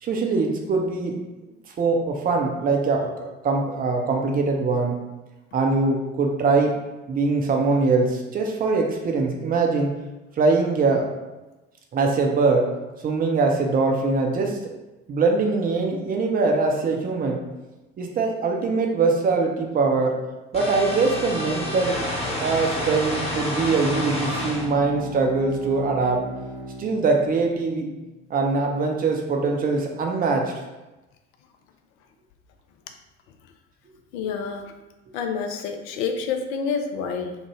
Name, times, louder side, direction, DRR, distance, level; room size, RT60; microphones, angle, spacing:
voice 1, 0.0-1.2 1.8-5.0 5.5-6.8 7.1-10.0 10.4-11.1 11.9-12.7 13.0-14.6 15.1-17.4 18.0-20.2 20.5-22.0 22.4-26.3 26.8-27.9 28.3-30.5, right 3 dB, 25° right, 2 dB, 0.5 m, -22 dB
sound 1, 20.5-24.7, left 1 dB, 20° left, 1.0 m, -29 dB
Bowed string instrument, 23.2-27.8, equal, 80° right, 1.4 m, -36 dB
voice 2, 34.1-34.7 35.1-37.4, left 5 dB, 60° left, 5 dB, 0.5 m, -28 dB
3.1 x 2.1 x 3.0 m, 1.1 s
figure-of-eight pair, 55°, 35 cm